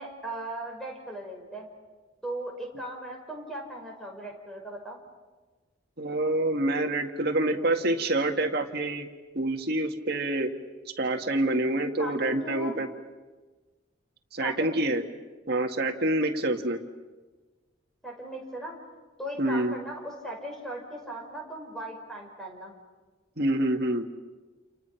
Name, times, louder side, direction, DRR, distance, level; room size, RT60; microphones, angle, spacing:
voice 1, 0.0-1.7 2.2-5.0 12.0-12.8 14.4-14.9 18.0-22.7, right 1 dB, ahead, 0 dB, 5.7 m, -38 dB
voice 2, 6.0-9.1 9.4-10.5 11.0-12.9 14.3-15.0 15.5-16.8 19.4-19.8 23.4-24.1, right 1 dB, 55° right, 4 dB, 1.9 m, -27 dB
29.5 x 29.5 x 5.8 m, 1.3 s
head